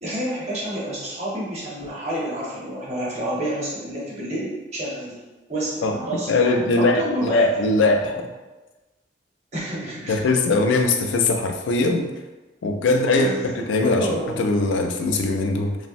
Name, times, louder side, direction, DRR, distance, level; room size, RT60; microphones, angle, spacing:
voice 1, 0.0-5.2 5.5-7.7 9.5-10.2 13.1-14.3, right 1 dB, 35° right, -5 dB, 0.7 m, -29 dB
voice 2, 6.3-8.3 10.1-12.1 12.6-13.3 13.7-15.8, left 2 dB, 85° left, 4 dB, 0.3 m, -21 dB
3.1 x 2.0 x 2.5 m, 1.2 s
head